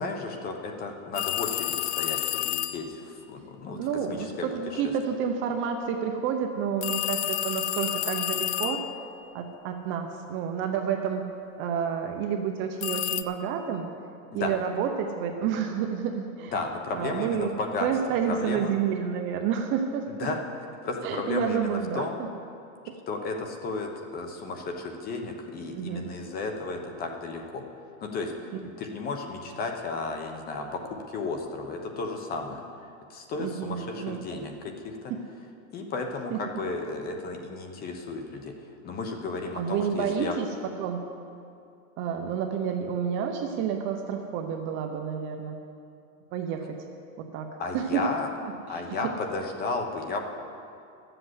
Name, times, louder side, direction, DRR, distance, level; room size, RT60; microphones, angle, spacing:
voice 1, 0.0-3.8 4.1-4.5 4.7-4.8 14.3-14.5 16.5-17.9 18.2-18.7 20.1-20.4 20.8-22.2 23.1-27.6 28.0-28.3 28.6-32.6 33.1-35.0 35.7-38.5 38.8-40.4 47.6-48.3 48.7-50.2, left 3 dB, 20° left, 4 dB, 1.0 m, -33 dB
sound 1, 1.1-2.9 6.8-9.1 12.8-13.2, left 14 dB, 55° left, 0.5 m, -30 dB
voice 2, 3.7-8.9 9.3-11.2 11.6-13.9 14.3-16.5 16.9-17.5 17.8-20.3 21.0-22.3 25.7-26.1 33.4-34.4 36.3-36.4 39.5-41.1 42.0-45.6 46.3-46.7 47.2-47.5 47.7-48.1 48.7-48.8, right 7 dB, 30° right, 4 dB, 0.7 m, -29 dB
12.5 x 7.8 x 8.0 m, 2.5 s
supercardioid pair, 160°, 41 cm